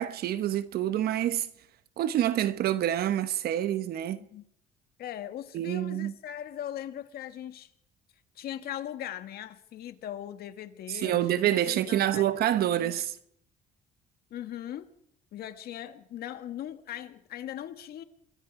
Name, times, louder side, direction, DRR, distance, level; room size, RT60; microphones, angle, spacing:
voice 1, 0.0-1.5 2.0-4.2 5.5-6.1 10.9-13.2, right 12 dB, 65° right, 1.1 m, -27 dB
voice 2, 5.0-7.7 8.4-12.2 12.8-13.0 14.3-14.9 15.3-18.0, left 11 dB, 65° left, 1.9 m, -39 dB
26.5 x 22.5 x 4.9 m
cardioid pair, 110°, 17 cm